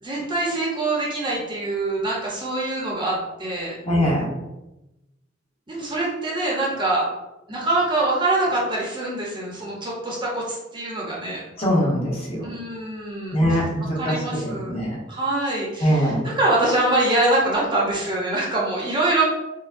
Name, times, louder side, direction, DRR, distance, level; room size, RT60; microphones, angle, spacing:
voice 1, 0.0-3.8 5.7-7.1 7.5-11.4 12.4-13.6 13.9-14.8 15.1-19.2, right 2 dB, 25° right, -4 dB, 0.7 m, -24 dB
voice 2, 3.9-4.3 11.6-12.4 13.3-14.2 14.4-14.9 15.8-16.2, equal, 30° left, -5 dB, 0.9 m, -22 dB
4.5 x 2.0 x 2.5 m, 0.97 s
head